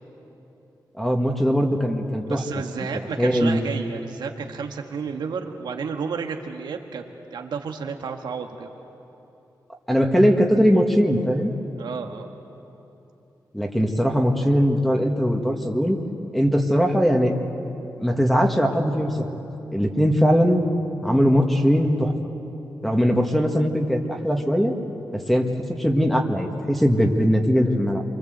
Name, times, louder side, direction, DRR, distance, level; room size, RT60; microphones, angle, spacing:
voice 1, 1.0-2.4 3.2-3.7 9.9-11.5 13.5-16.0 16.3-17.3 18.0-19.4 19.7-20.6 21.0-22.1 22.8-24.7 25.3-28.0, equal, ahead, 2 dB, 1.9 m, -20 dB
voice 2, 2.2-7.0 7.3-8.7 11.8-12.3, right 5 dB, 90° right, 3 dB, 1.6 m, -31 dB
28.5 x 23.5 x 8.0 m, 3.0 s
wide cardioid pair, 120°, 7 cm